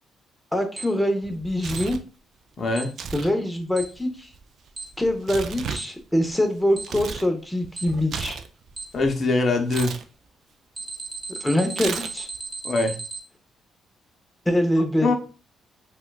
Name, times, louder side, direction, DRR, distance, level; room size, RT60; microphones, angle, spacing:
voice 1, 0.5-2.0 3.1-4.3 5.0-8.4 11.4-12.3 14.5-15.1, left 1 dB, 5° left, 0.7 m, -24 dB
Alarm, 0.8-0.9 1.8-1.9 2.8-2.9 3.8-3.9 4.8-4.9 5.8-5.9 6.8-6.9 7.8-7.9 8.8-8.9 9.8-9.9 10.8-13.2, right 4 dB, 25° right, 0.6 m, -34 dB
Tearing, 1.2-2.1 2.9-3.3 3.6-7.3 7.6-9.1 9.7-10.0 11.7-12.4, right 6 dB, 60° right, 0.3 m, -35 dB
voice 2, 2.6-2.9 8.9-10.0 12.6-13.0 15.0-15.1, left 2 dB, 45° left, 0.7 m, -22 dB
4.2 x 2.3 x 2.3 m
cardioid pair, 90°, 0 cm